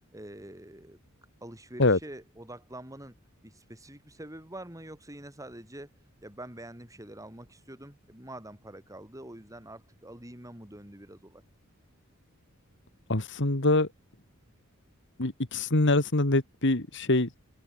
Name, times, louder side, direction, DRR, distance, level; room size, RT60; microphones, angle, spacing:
voice 1, 0.1-1.0 1.4-3.2 3.4-5.9 6.2-11.4, right 1 dB, 15° right, 7.3 m, -45 dB
voice 2, 13.1-13.9 15.2-17.4, left 2 dB, 60° left, 2.2 m, -24 dB
open air
head